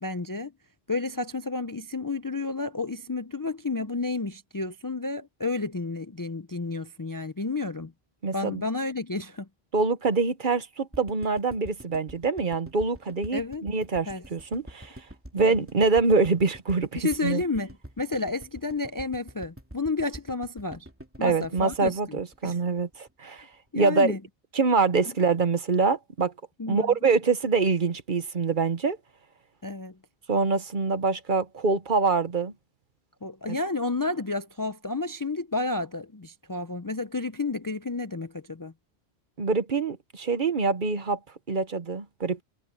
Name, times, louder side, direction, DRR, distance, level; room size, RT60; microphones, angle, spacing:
voice 1, 0.0-0.5 0.9-7.9 8.3-9.5 13.3-13.7 14.1-14.2 15.4-15.6 17.0-17.7 18.0-20.9 21.2-22.0 22.4-22.6 23.3-23.5 23.7-24.2 26.6-26.9 29.6-30.0 33.2-38.7, left 3 dB, 25° left, 0.5 m, -31 dB
voice 2, 8.2-8.5 9.7-15.0 15.3-17.4 21.2-23.5 23.7-24.1 24.5-26.3 26.7-29.0 30.3-32.5 33.5-33.6 39.4-41.2 41.5-42.4, right 4 dB, 50° right, 1.2 m, -25 dB
sound 1, 10.9-23.1 23.4-23.5 23.7-23.8, equal, 10° right, 2.8 m, -45 dB
omnidirectional pair, 1.1 m